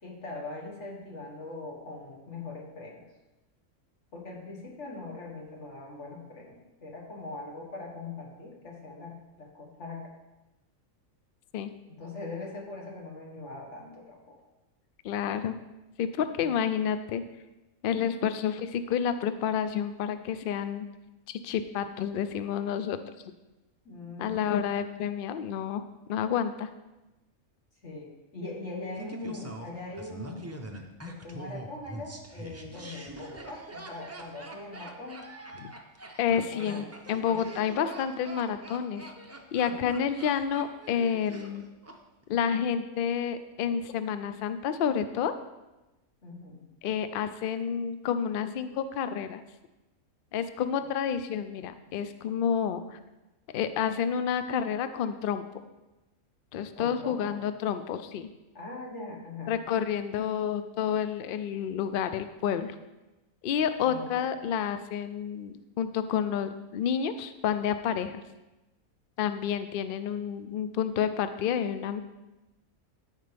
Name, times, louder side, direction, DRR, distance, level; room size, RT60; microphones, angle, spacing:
voice 1, 0.0-3.0 4.1-10.1 11.9-14.4 16.4-16.6 23.9-24.6 27.8-30.6 31.0-35.3 36.5-36.8 37.3-37.4 39.7-39.9 46.2-46.7 56.8-57.4 58.5-59.5 63.8-64.3, left 2 dB, 55° left, -1 dB, 1.9 m, -41 dB
voice 2, 15.0-15.6 16.0-17.2 17.8-20.9 21.3-23.0 24.2-25.8 26.1-26.7 35.6-35.7 36.2-39.1 39.5-41.7 42.3-45.3 46.8-49.4 50.3-53.0 53.5-55.4 56.5-58.3 59.5-62.8 63.4-68.2 69.2-72.0, left 8 dB, 85° left, 11 dB, 0.4 m, -29 dB
Laughter, 29.0-42.0 42.2-42.3, right 2 dB, 20° right, 0.4 m, -44 dB
13.5 x 4.9 x 3.4 m, 1.0 s
omnidirectional pair, 1.5 m